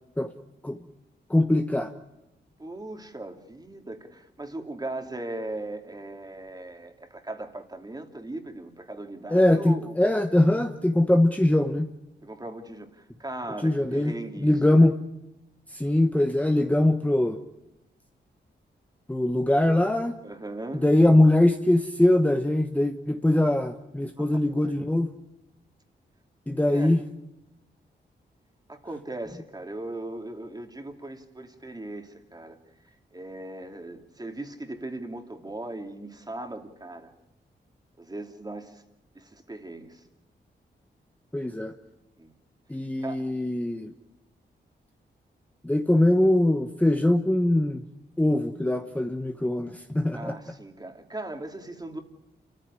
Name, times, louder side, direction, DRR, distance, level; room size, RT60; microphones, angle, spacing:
voice 1, 1.3-1.9 9.3-11.9 13.6-14.1 14.4-15.0 15.7-17.4 19.1-20.2 20.7-25.1 26.5-27.0 41.3-41.7 42.7-43.9 45.6-47.8 48.2-50.4, left 1 dB, 10° left, 5 dB, 1.1 m, -22 dB
voice 2, 2.6-10.0 12.2-14.9 20.2-20.9 24.1-24.3 24.6-24.8 26.7-27.0 28.7-32.6 33.1-37.1 38.0-38.8 39.1-40.0 42.2-42.3 43.0-43.2 50.1-52.0, right 2 dB, 20° right, 5 dB, 2.8 m, -38 dB
28.5 x 14.5 x 9.9 m, 0.91 s
cardioid pair, 85°, 19 cm